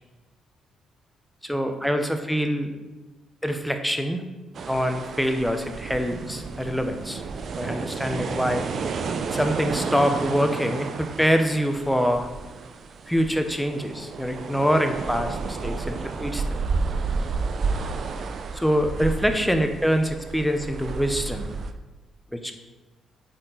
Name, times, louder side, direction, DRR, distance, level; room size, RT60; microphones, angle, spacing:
voice 1, 1.4-2.7 3.4-4.2 4.7-7.2 7.6-8.8 9.3-12.3 13.1-16.4 18.5-21.5 22.3-22.6, equal, ahead, 6 dB, 0.8 m, -25 dB
sound 1, 4.5-21.7, right 4 dB, 55° right, 0.5 m, -31 dB
8.1 x 4.4 x 3.9 m, 1.2 s
cardioid pair, 90°, 0 cm